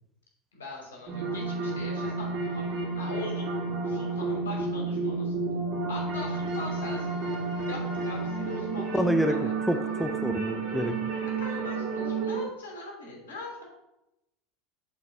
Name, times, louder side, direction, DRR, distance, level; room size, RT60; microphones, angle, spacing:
voice 1, 0.5-2.7 3.0-3.5 3.8-5.3 5.9-7.4 7.7-9.5 11.4-13.6, left 2 dB, 75° left, -2 dB, 2.9 m, -41 dB
sound 1, 1.1-12.4, right 4 dB, 55° right, 2.7 m, -31 dB
voice 2, 8.7-10.9, equal, ahead, 6 dB, 0.6 m, -28 dB
7.3 x 4.1 x 5.6 m, 0.91 s
figure-of-eight pair, 80°, 0 cm